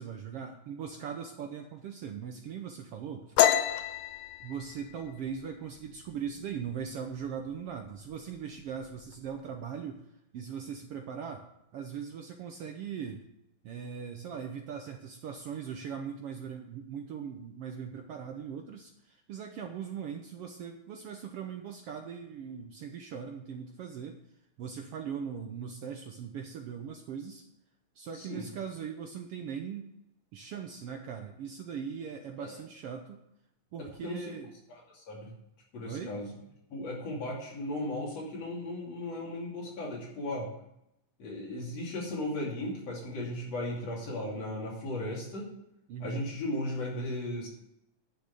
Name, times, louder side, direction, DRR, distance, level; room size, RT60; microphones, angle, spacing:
voice 1, 0.0-3.4 4.4-10.1 10.3-11.5 11.7-13.2 13.6-24.2 24.6-27.4 27.9-29.9 30.3-33.2 33.7-34.5 35.8-36.2 45.9-46.2, right 7 dB, 70° right, 4 dB, 1.5 m, -40 dB
sound 1, 3.4-6.8 7.1-7.5 7.8-8.4 8.6-9.4, left 11 dB, 75° left, 1.7 m, -29 dB
voice 2, 28.1-28.5 32.4-32.6 34.0-34.2 34.9-35.3 35.7-36.3 36.7-40.5 41.2-45.5 46.0-47.5, left 1 dB, 60° left, -3 dB, 3.9 m, -36 dB
10.0 x 6.6 x 8.3 m, 0.82 s
omnidirectional pair, 3.4 m